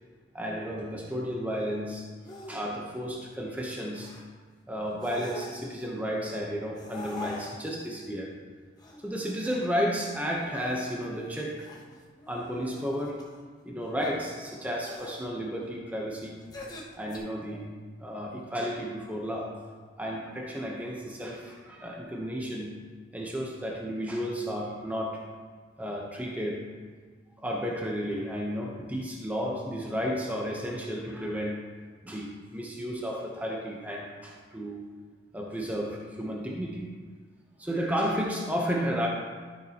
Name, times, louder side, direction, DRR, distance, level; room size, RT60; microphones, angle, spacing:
voice 1, 0.3-2.1 2.5-4.1 4.7-8.3 9.0-11.7 12.3-13.2 13.6-16.4 16.9-17.7 18.0-19.6 20.0-22.7 23.1-25.3 25.8-26.6 27.4-31.6 32.0-34.8 35.3-37.0 37.6-39.1, equal, 10° right, -2 dB, 0.8 m, -32 dB
sound 1, 2.2-2.6 3.0-3.3 3.9-4.2 4.9-5.8 6.7-7.9 8.8-10.0 10.3-13.4 14.0-14.4 14.8-15.1 16.4-17.2, left 2 dB, 20° left, 1.0 m, -44 dB
12.5 x 6.6 x 2.9 m, 1.5 s
head